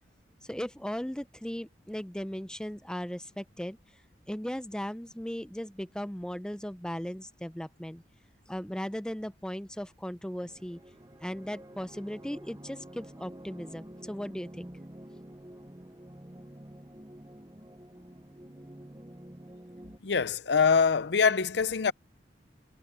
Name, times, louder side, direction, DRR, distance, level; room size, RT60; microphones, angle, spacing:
voice 1, 0.4-3.8 4.3-8.0 8.5-10.8 11.2-14.7, equal, 5° left, 0.6 m, -37 dB
sound 1, 10.4-20.0, right 1 dB, 20° right, 0.9 m, -49 dB
voice 2, 20.0-21.9, left 5 dB, 65° left, 0.7 m, -24 dB
head